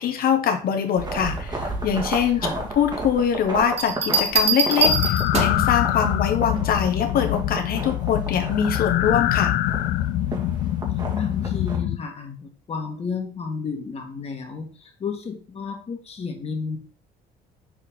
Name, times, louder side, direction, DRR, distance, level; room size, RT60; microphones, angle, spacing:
voice 1, 0.0-2.5 2.8-9.5, left 8 dB, 60° left, 6 dB, 1.5 m, -23 dB
sound 1, 1.0-11.8, right 2 dB, 25° right, 1.9 m, -33 dB
sound 2, 3.8-5.7 7.3-7.7, right 4 dB, 40° right, 1.3 m, -23 dB
sound 3, 4.8-12.0, left 13 dB, 75° left, 0.5 m, -24 dB
voice 2, 11.1-16.8, left 5 dB, 40° left, 3 dB, 1.9 m, -32 dB
6.8 x 4.5 x 3.8 m, 0.39 s
cardioid pair, 110°, 17 cm